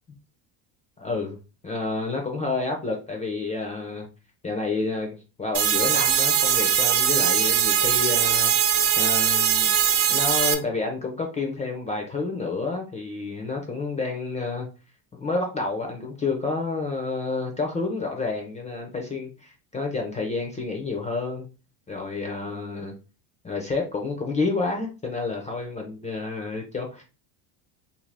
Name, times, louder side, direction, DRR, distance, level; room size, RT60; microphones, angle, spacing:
voice 1, 1.0-1.4 1.6-4.1 4.4-8.5 9.0-9.7 10.1-14.7 15.1-21.5 21.9-22.9 23.4-27.0, left 3 dB, 15° left, 2 dB, 0.3 m, -29 dB
sound 1, 5.5-10.5, right 9 dB, 85° right, 0.7 m, -21 dB
2.7 x 2.6 x 3.1 m, 0.32 s
supercardioid pair, 115°, 48 cm